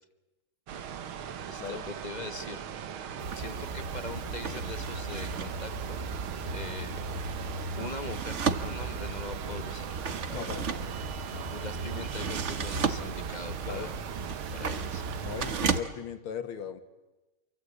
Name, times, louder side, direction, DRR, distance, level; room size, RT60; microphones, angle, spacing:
sound 1, 0.7-15.8, right 8 dB, 85° right, 2.1 m, -39 dB
voice 1, 1.5-2.9 3.3-6.2 6.5-7.0 7.5-10.0 10.3-10.5 11.5-13.9 14.5-15.1, left 3 dB, 25° left, 10 dB, 1.1 m, -42 dB
sound 2, 3.2-15.8, right 4 dB, 40° right, 1.2 m, -35 dB
voice 2, 10.3-11.0 11.2-11.5 13.6-13.9 15.2-16.8, left 8 dB, 90° left, 10 dB, 2.4 m, -38 dB
27.5 x 23.5 x 8.3 m, 1.1 s
omnidirectional pair, 2.3 m